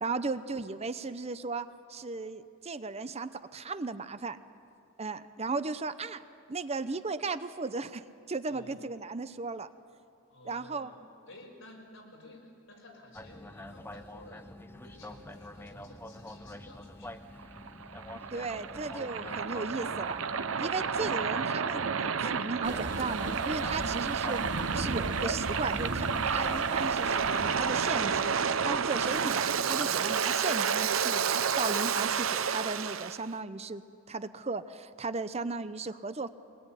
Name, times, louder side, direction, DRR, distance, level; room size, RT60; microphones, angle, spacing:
voice 1, 0.0-4.4 5.0-9.7 10.4-10.9 18.3-20.2 20.6-24.4 24.7-33.8 34.1-36.3, right 3 dB, 30° right, 12 dB, 0.8 m, -36 dB
voice 2, 8.5-8.8 10.3-17.4 23.6-23.9 29.8-30.1, left 1 dB, 75° left, 0 dB, 6.2 m, -53 dB
sound 1, 13.1-26.8, left 1 dB, 10° left, 0.7 m, -46 dB
Waves surf, 17.4-33.2, right 6 dB, 90° right, 0.8 m, -30 dB
sound 2, 22.6-29.2, right 1 dB, 60° right, 1.6 m, -39 dB
23.5 x 20.5 x 10.0 m, 2.4 s
head